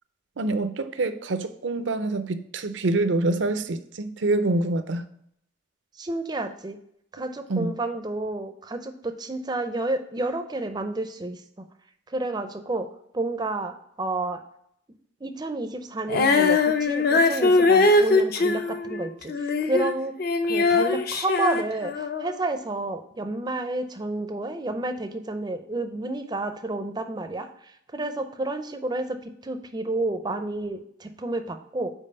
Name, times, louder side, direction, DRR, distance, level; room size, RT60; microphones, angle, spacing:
voice 1, 0.4-5.1 7.5-7.7, right 2 dB, 65° right, 11 dB, 0.5 m, -26 dB
voice 2, 5.9-6.8 7.1-11.6 12.1-12.9 13.1-14.4 15.2-20.1 20.4-31.9, right 2 dB, 20° right, 8 dB, 0.5 m, -30 dB
Female singing, 16.1-19.9 20.2-22.3, left 3 dB, 50° left, 0.6 m, -21 dB
5.5 x 4.5 x 5.3 m, 0.71 s
head